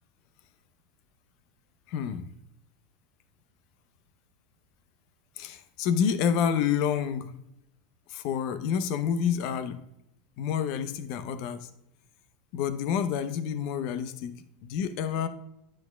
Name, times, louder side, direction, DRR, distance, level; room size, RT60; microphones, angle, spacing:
voice 1, 1.9-2.3 5.4-7.3 8.1-9.8 10.4-11.7 12.5-15.3, left 8 dB, 60° left, 11 dB, 0.7 m, -28 dB
9.8 x 6.4 x 2.3 m, 0.80 s
hypercardioid pair, 95°, 0 cm